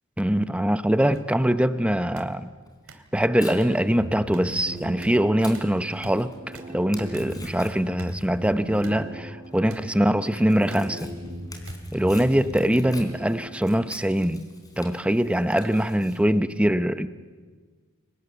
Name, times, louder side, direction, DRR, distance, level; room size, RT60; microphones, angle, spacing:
voice 1, 0.2-2.5 3.1-6.3 6.7-11.1 11.9-14.4 14.8-17.1, equal, 5° right, 12 dB, 0.7 m, -23 dB
sound 1, 1.1-1.2 2.1-2.3 2.9-3.0 3.6-3.7 4.3-4.4 5.0-5.1 5.5-5.7 6.0-6.1 6.5-6.7 7.1-7.3 8.0-8.1 8.8-8.9 9.7-9.8 10.7-10.9 11.7-11.8 12.6-12.8, right 2 dB, 70° right, 2.8 m, -44 dB
Tearing, 2.6-16.2, left 3 dB, 15° left, 3.8 m, -48 dB
sound 2, 3.9-13.9, equal, 35° right, 6.6 m, -39 dB
30.0 x 24.5 x 6.9 m, 1.5 s
head